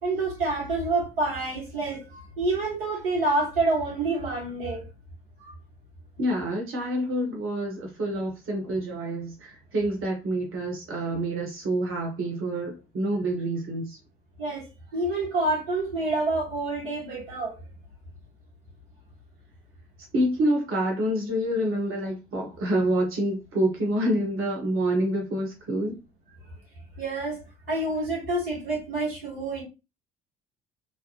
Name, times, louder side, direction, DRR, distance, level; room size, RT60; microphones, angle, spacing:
voice 1, 0.0-4.9 14.4-17.6 27.0-27.4 27.7-29.6, right 2 dB, 75° right, 1.6 m, -27 dB
voice 2, 6.2-14.0 20.1-26.0, right 1 dB, 45° right, 1.1 m, -27 dB
3.3 x 2.1 x 2.8 m
figure-of-eight pair, 55°, 30 cm